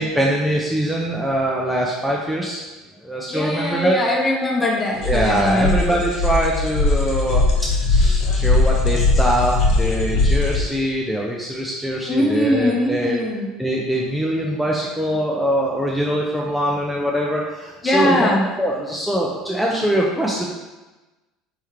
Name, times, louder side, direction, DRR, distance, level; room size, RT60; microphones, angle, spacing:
voice 1, 0.0-2.6 3.0-4.0 5.0-7.5 7.9-13.2 13.6-20.5, right 1 dB, 5° right, -4 dB, 0.6 m, -23 dB
voice 2, 3.3-5.8 10.1-10.2 12.1-13.5 17.8-18.5, left 1 dB, 20° left, -1 dB, 0.9 m, -21 dB
sound 1, 5.0-10.6, left 3 dB, 50° left, 0.8 m, -19 dB
4.5 x 3.4 x 3.1 m, 1.1 s
figure-of-eight pair, 65°, 0 cm